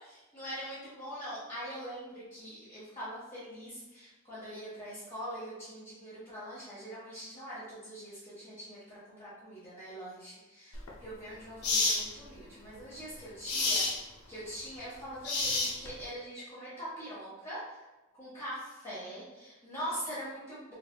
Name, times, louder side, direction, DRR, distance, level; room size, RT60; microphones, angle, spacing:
voice 1, 0.0-17.8 18.2-20.7, equal, 25° left, -13 dB, 1.4 m, -43 dB
sound 1, 10.7-10.9 11.6-12.0 13.4-14.0 15.2-16.0, left 3 dB, 90° left, 0.6 m, -29 dB
3.5 x 3.4 x 2.2 m, 1.1 s
head